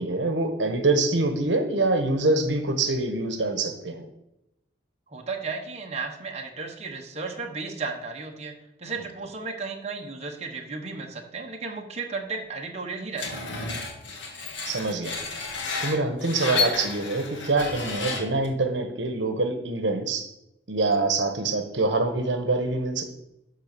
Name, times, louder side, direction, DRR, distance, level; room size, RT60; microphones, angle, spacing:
voice 1, 0.0-4.1 14.6-15.1 15.8-20.3 20.7-23.0, right 2 dB, 75° right, 7 dB, 1.1 m, -25 dB
voice 2, 5.1-13.4, right 4 dB, 35° right, 1 dB, 1.1 m, -34 dB
Screech, 13.2-18.5, left 4 dB, 80° left, 1.9 m, -31 dB
11.5 x 3.9 x 6.7 m, 0.89 s
head